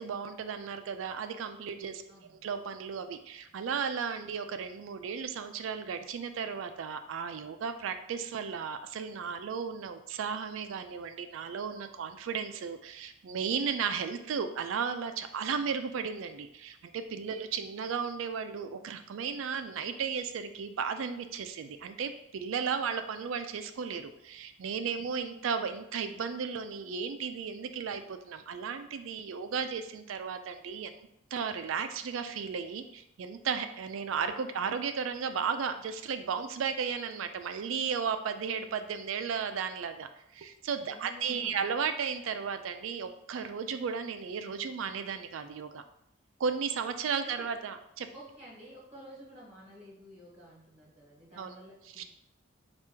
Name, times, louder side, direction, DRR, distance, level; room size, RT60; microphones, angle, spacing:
voice 1, 0.0-30.9 31.3-45.8 46.4-48.1 51.4-51.5 52.0-52.1, right 6 dB, 70° right, 9 dB, 0.3 m, -35 dB
voice 2, 2.1-2.4 17.3-17.4 40.9-41.7 47.2-47.5 48.1-52.0, equal, 30° right, -5 dB, 1.4 m, -51 dB
3.4 x 2.4 x 4.5 m, 0.79 s
head